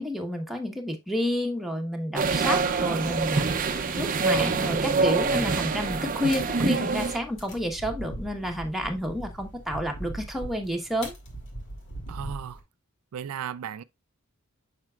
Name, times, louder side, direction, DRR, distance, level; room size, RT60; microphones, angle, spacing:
voice 1, 0.0-11.1, equal, ahead, 1.1 m, -30 dB
sound 1, 2.1-7.2, right 4 dB, 40° right, 0.6 m, -25 dB
Breaking A Branch, 6.2-12.6, right 1 dB, 60° left, 2.3 m, -41 dB
voice 2, 12.1-12.6 13.1-13.8, right 8 dB, 90° right, 0.4 m, -35 dB
7.4 x 5.9 x 2.4 m
head